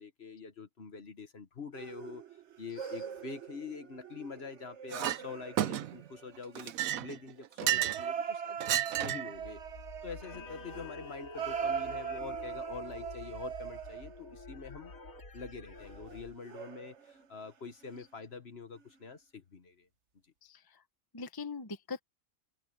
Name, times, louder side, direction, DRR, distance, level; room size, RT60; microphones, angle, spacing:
voice 1, 0.0-2.2 2.6-9.6 10.0-14.9 15.3-19.9, left 5 dB, 45° left, 1.5 m, -45 dB
sound 1, 1.7-7.0 7.9-14.5 15.8-17.4 17.8-18.1 18.8-18.9, right 7 dB, 55° right, 1.3 m, -41 dB
Chink clink, 4.9-5.2 5.6-6.1 6.6-8.1 8.6-9.3, right 12 dB, 70° right, 1.1 m, -32 dB
sound 2, 9.3-16.4, left 2 dB, 70° left, 3.2 m, -48 dB
voice 2, 20.4-20.8 21.1-22.0, left 4 dB, 20° left, 0.8 m, -42 dB
open air
omnidirectional pair, 1.5 m